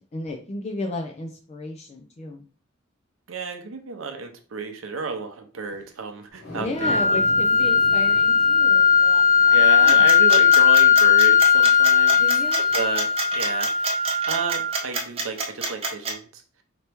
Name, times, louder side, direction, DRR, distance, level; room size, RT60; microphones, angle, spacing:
voice 1, 0.1-2.5 6.5-10.1 12.1-12.7, left 2 dB, 35° left, 2 dB, 0.4 m, -34 dB
voice 2, 3.3-7.2 9.5-12.2 12.7-14.0 14.3-16.4, right 4 dB, 75° right, 5 dB, 0.6 m, -32 dB
sound 1, 6.3-12.8 13.2-13.3, left 2 dB, 75° left, 2.0 m, -42 dB
sound 2, 6.8-14.8, left 6 dB, 15° left, 1.0 m, -18 dB
sound 3, 9.9-16.1, right 3 dB, 30° right, 0.7 m, -28 dB
4.2 x 2.9 x 3.4 m, 0.39 s
head